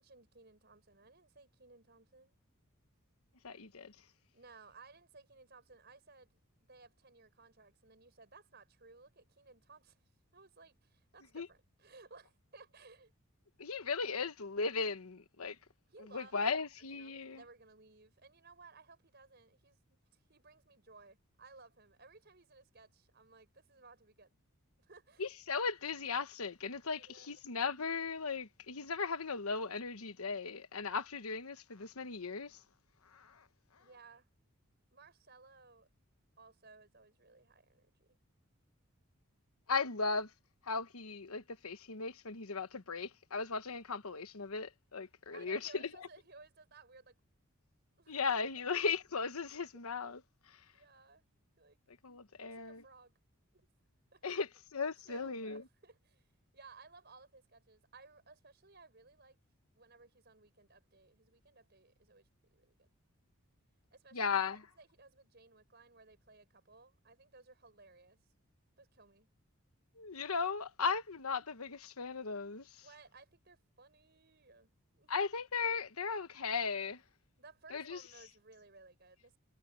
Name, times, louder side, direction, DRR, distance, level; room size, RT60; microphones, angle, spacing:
voice 1, 0.0-2.4 4.3-10.0 10.3-13.1 15.9-16.6 16.9-24.4 24.8-25.2 27.0-27.4 33.8-34.3 34.9-35.9 36.4-38.2 45.3-47.2 48.0-48.7 50.7-51.2 51.6-51.8 52.3-53.1 53.5-53.7 54.1-54.4 54.8-56.2 56.5-59.4 59.8-62.9 63.9-68.2 68.8-69.3 72.8-75.1 77.4-79.4, right 3 dB, 50° right, 5.6 m, -59 dB
voice 2, 3.4-3.9 11.3-11.5 13.6-15.6 16.1-17.4 25.2-32.6 33.1-33.4 39.7-40.3 40.6-45.9 48.1-50.2 52.0-52.8 54.2-55.6 64.1-64.6 70.0-72.8 75.1-77.0 77.7-78.0, left 5 dB, 90° left, 1.2 m, -37 dB
head